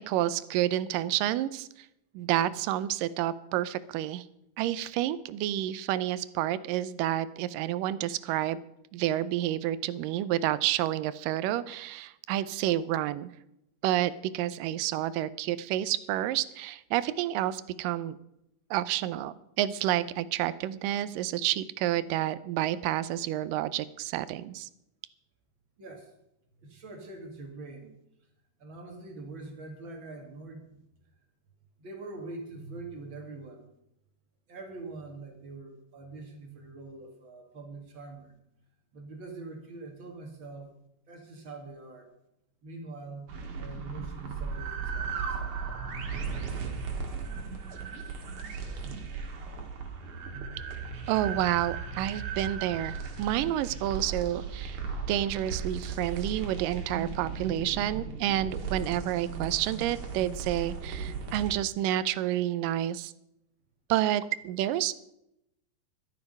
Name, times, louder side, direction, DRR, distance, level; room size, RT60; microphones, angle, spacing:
voice 1, 0.1-1.7 2.1-4.2 4.6-8.6 8.9-13.3 13.8-18.2 18.7-24.7 51.1-54.8 55.1-63.1 63.9-64.9, right 13 dB, 85° right, 16 dB, 2.3 m, -29 dB
voice 2, 25.8-26.1 26.6-28.0 28.6-30.7 31.8-33.7 34.5-38.4 38.9-40.7 41.1-42.1 42.6-43.3 43.6-45.4, right 3 dB, 40° right, 3 dB, 2.4 m, -44 dB
sound 1, 43.3-61.5, right 5 dB, 65° right, 3.0 m, -36 dB
13.0 x 11.5 x 5.4 m, 0.82 s
omnidirectional pair, 3.8 m